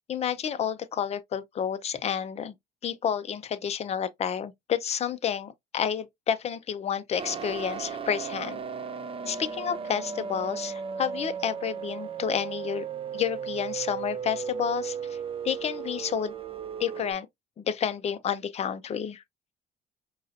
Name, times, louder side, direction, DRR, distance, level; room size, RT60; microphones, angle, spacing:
voice 1, 0.1-2.5 2.8-8.6 9.2-12.9 13.1-15.2 15.4-16.3 16.8-17.3 17.6-19.2, left 8 dB, 40° left, 0.6 m, -30 dB
sound 1, 7.2-17.1, right 6 dB, 35° right, 0.6 m, -35 dB
5.5 x 2.4 x 2.6 m
cardioid pair, 110°, 17 cm